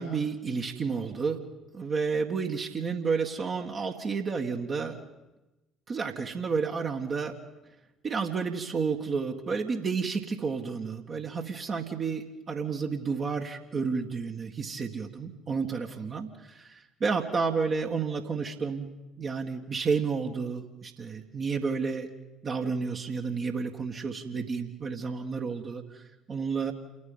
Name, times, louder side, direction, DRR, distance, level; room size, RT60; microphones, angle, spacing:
voice 1, 0.0-1.4 1.7-5.0 5.9-7.3 8.0-16.3 16.5-18.9 19.2-22.1 22.4-25.8 26.3-26.7, right 5 dB, 40° right, 2 dB, 1.7 m, -31 dB
28.5 x 9.6 x 9.5 m, 1.0 s
figure-of-eight pair, 55°, 0 cm